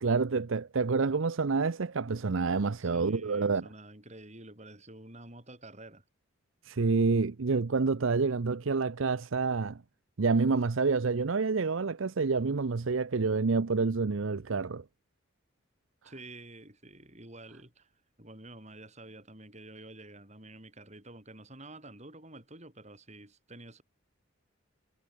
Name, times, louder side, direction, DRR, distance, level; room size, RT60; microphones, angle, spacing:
voice 1, 0.0-3.6 6.6-9.8 10.2-14.8, right 4 dB, 70° right, 0.6 m, -28 dB
voice 2, 2.8-6.0 16.0-17.9 18.2-23.8, right 2 dB, 35° right, 7.3 m, -49 dB
head